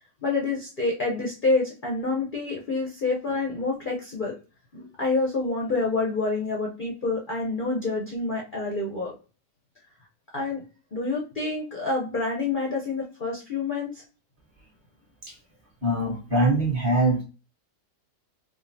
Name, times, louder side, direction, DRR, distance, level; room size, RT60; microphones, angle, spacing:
voice 1, 0.2-4.3 4.7-9.1 10.3-10.6 10.9-14.0, left 3 dB, 50° left, -2 dB, 0.6 m, -27 dB
voice 2, 15.8-17.2, right 2 dB, 35° right, -3 dB, 1.4 m, -23 dB
4.8 x 2.4 x 2.6 m, 0.34 s
omnidirectional pair, 1.8 m